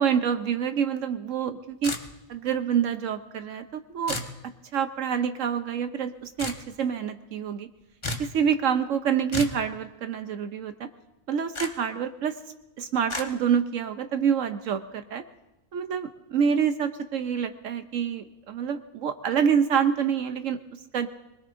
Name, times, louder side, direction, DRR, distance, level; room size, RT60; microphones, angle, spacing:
voice 1, 0.0-2.0 2.3-4.2 4.7-7.7 8.2-10.9 11.3-12.4 12.8-15.2 15.7-20.6 20.9-21.1, right 7 dB, 70° right, 9 dB, 1.0 m, -27 dB
sound 1, 1.8-2.4 4.1-4.4 6.4-6.6 8.0-8.3 9.3-9.6 11.5-11.7 13.1-13.3, left 2 dB, 25° left, 1.0 m, -32 dB
23.0 x 21.0 x 2.6 m, 0.97 s
omnidirectional pair, 1.4 m